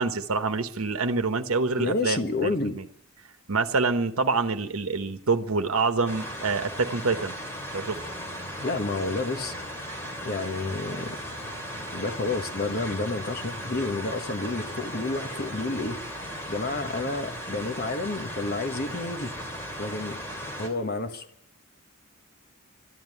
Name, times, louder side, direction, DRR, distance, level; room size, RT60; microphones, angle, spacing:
voice 1, 0.0-2.8 3.5-7.4 7.7-8.0, right 4 dB, 85° right, 1.0 m, -26 dB
voice 2, 1.8-2.7 8.6-9.5 10.2-11.2 11.9-19.3 19.8-20.2 20.6-21.3, left 2 dB, 45° left, 1.3 m, -30 dB
sound 1, 6.1-20.7, equal, 10° left, 2.8 m, -37 dB
13.0 x 11.0 x 9.7 m
head